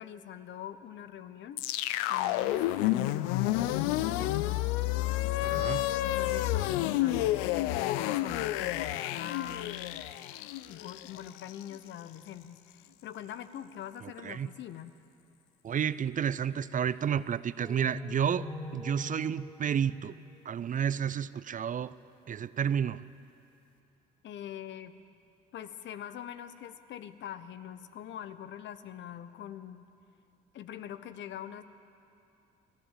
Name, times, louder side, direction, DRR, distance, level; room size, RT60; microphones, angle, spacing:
voice 1, 0.0-1.6 2.1-4.7 6.0-10.0 10.7-15.0 24.2-25.0 25.5-29.8 30.5-31.6, left 10 dB, 60° left, 12 dB, 1.1 m, -43 dB
sound 1, 1.6-11.8, left 15 dB, 80° left, 0.6 m, -30 dB
voice 2, 5.4-5.9 14.2-14.5 15.6-18.5 18.7-20.1 20.4-21.9 22.3-23.0, right 8 dB, 40° right, 17 dB, 0.6 m, -31 dB
sound 2, 17.6-21.0, left 4 dB, 5° left, 3.2 m, -44 dB
24.5 x 15.0 x 7.6 m, 2.7 s
hypercardioid pair, 60°, 21 cm